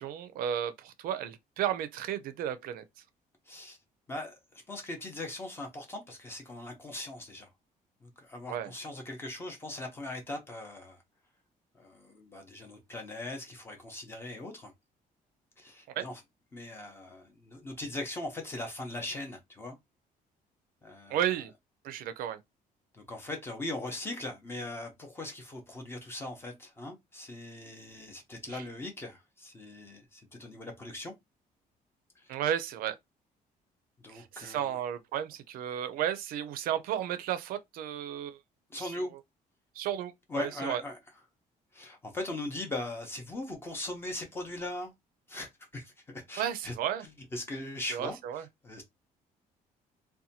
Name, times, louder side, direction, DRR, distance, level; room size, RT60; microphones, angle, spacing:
voice 1, 0.0-2.8 8.5-8.7 15.9-16.1 21.1-21.5 21.8-22.4 28.5-28.6 32.3-33.0 34.1-38.4 38.8-39.1 39.8-40.8 46.4-47.0 47.9-48.4, right 10 dB, 70° right, 0.4 m, -33 dB
voice 2, 3.5-3.8 4.1-7.5 8.0-11.0 11.7-14.7 15.6-16.2 16.5-19.8 20.8-21.2 22.9-31.1 32.2-32.4 34.0-34.8 38.7-39.1 40.3-41.0 41.7-44.9 45.3-46.7 47.3-48.8, left 2 dB, 15° left, 0.6 m, -40 dB
2.7 x 2.2 x 2.7 m
cardioid pair, 175°, 15 cm